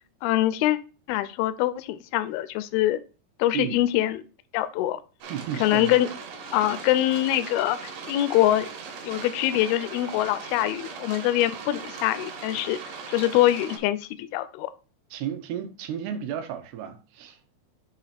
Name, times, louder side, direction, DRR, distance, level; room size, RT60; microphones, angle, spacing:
voice 1, 0.2-0.8 1.1-3.0 3.4-4.2 4.5-5.0 5.6-6.1 6.5-8.7 9.0-12.8 13.1-14.7, left 14 dB, 80° left, 2.3 m, -24 dB
sound 1, 5.2-13.8, right 5 dB, 65° right, 2.8 m, -39 dB
voice 2, 5.2-6.0 6.6-6.7 15.1-17.4, right 9 dB, 80° right, 2.8 m, -33 dB
7.4 x 2.9 x 5.7 m
omnidirectional pair, 4.6 m